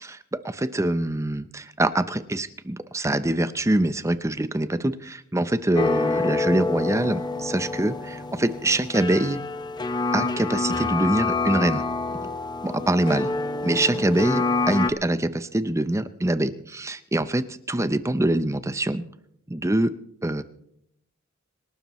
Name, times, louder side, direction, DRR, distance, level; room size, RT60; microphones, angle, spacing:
voice 1, 0.0-9.4 10.1-11.8 12.7-13.3 13.6-19.0 19.5-19.9 20.2-20.4, right 1 dB, 15° right, 13 dB, 0.6 m, -24 dB
sound 1, 5.8-14.9, left 3 dB, 20° left, 0.8 m, -27 dB
26.5 x 12.5 x 3.1 m, 0.75 s
head